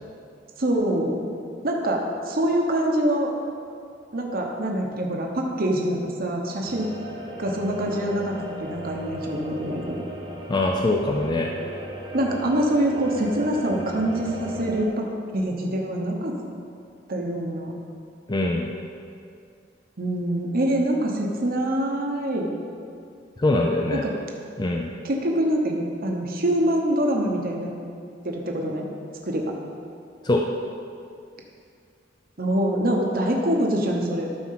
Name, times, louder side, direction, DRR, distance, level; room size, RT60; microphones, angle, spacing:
voice 1, 0.6-1.2 1.6-3.3 4.1-6.9 7.4-8.3 8.6-10.0 12.1-15.1 15.3-16.4 17.1-17.7 20.0-22.5 23.9-24.1 25.0-27.7 28.2-28.9 29.3-29.5 32.4-34.3, right 1 dB, 50° right, 1 dB, 1.1 m, -25 dB
sound 1, 6.6-14.9, right 1 dB, 25° right, 1.2 m, -36 dB
voice 2, 10.5-11.5 18.3-18.7 23.4-24.0 24.6-24.9 30.2-30.4, left 2 dB, 25° left, 1 dB, 0.5 m, -22 dB
12.5 x 4.4 x 5.8 m, 2.3 s
head